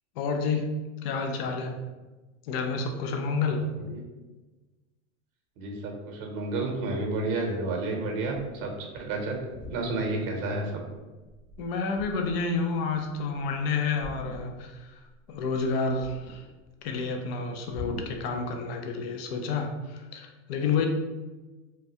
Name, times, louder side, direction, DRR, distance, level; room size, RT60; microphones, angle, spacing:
voice 1, 0.2-0.7 1.0-1.8 2.5-3.6 11.6-14.9 15.3-16.4 16.8-20.9, left 4 dB, 50° left, 4 dB, 0.5 m, -29 dB
voice 2, 3.6-4.0 5.6-8.7 9.0-9.4 9.7-10.8, right 2 dB, 45° right, 2 dB, 0.8 m, -31 dB
sound 1, 9.5-10.3 10.7-11.0 11.3-12.5 14.0-14.8 15.1-16.7 17.7-18.3, left 1 dB, 15° right, 0.6 m, -43 dB
3.2 x 2.3 x 2.7 m, 1.2 s
supercardioid pair, 145°, 41 cm